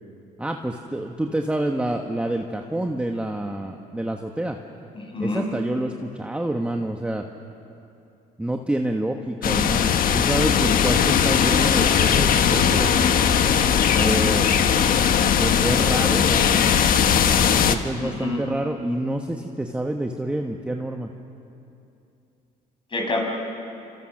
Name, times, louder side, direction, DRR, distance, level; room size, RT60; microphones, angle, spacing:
voice 1, 0.4-4.6 5.2-7.2 8.4-12.9 13.9-14.5 15.4-16.6 17.5-21.1, right 1 dB, 5° right, 3 dB, 1.3 m, -27 dB
voice 2, 4.9-5.4 14.0-14.2 18.0-18.4 22.9-23.2, left 2 dB, 30° left, 1 dB, 6.0 m, -27 dB
sound 1, 9.4-17.8, left 8 dB, 55° left, 1.4 m, -19 dB
29.5 x 26.0 x 6.5 m, 2.7 s
cardioid pair, 110°, 17 cm